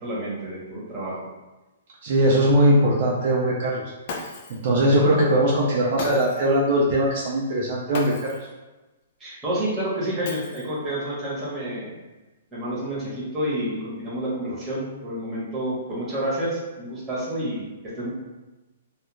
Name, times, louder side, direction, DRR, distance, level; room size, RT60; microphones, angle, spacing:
voice 1, 0.0-1.2 9.2-11.9 12.5-18.1, right 1 dB, 15° right, -8 dB, 0.9 m, -29 dB
voice 2, 2.0-3.8 4.5-8.3, right 1 dB, 45° right, -4 dB, 0.4 m, -20 dB
Shatter, 4.1-4.7 6.0-6.5 7.9-8.5 10.2-10.9, left 3 dB, 45° left, 0.3 m, -35 dB
2.3 x 2.0 x 3.0 m, 1.1 s
hypercardioid pair, 160°, 0 cm